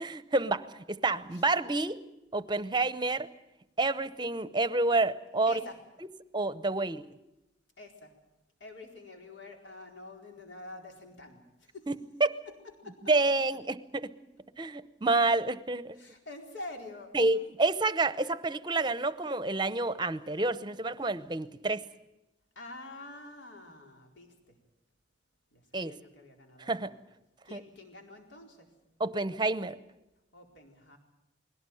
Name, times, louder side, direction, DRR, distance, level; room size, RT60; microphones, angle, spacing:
voice 1, 0.0-2.0 2.3-3.3 3.8-5.6 6.3-7.0 11.9-12.3 13.1-14.1 14.6-16.0 17.1-21.8 25.7-25.9 26.6-26.9 27.5-27.6 29.0-29.8, right 2 dB, 25° right, 15 dB, 0.8 m, -29 dB
voice 2, 7.8-8.1 8.6-11.4 11.7-11.9 12.8-13.0 15.9-17.1 22.6-24.6 25.5-27.0 27.4-28.7 30.3-31.0, left 2 dB, 80° left, 3 dB, 4.3 m, -47 dB
21.0 x 17.5 x 9.2 m, 0.96 s
head